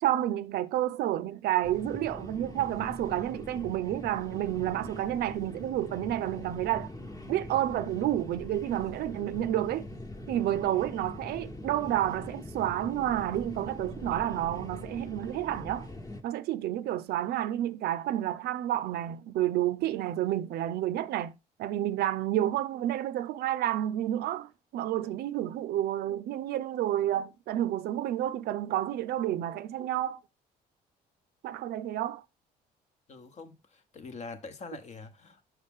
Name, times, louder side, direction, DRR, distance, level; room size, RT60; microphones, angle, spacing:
voice 1, 0.0-6.9 7.3-9.8 10.3-15.9 16.2-30.2 31.4-32.2, right 13 dB, 70° right, 0.5 m, -30 dB
sound 1, 1.6-16.2, left 1 dB, 20° left, 1.1 m, -43 dB
voice 2, 33.1-35.4, left 4 dB, 45° left, 1.0 m, -44 dB
6.0 x 5.6 x 3.5 m
cardioid pair, 110°, 17 cm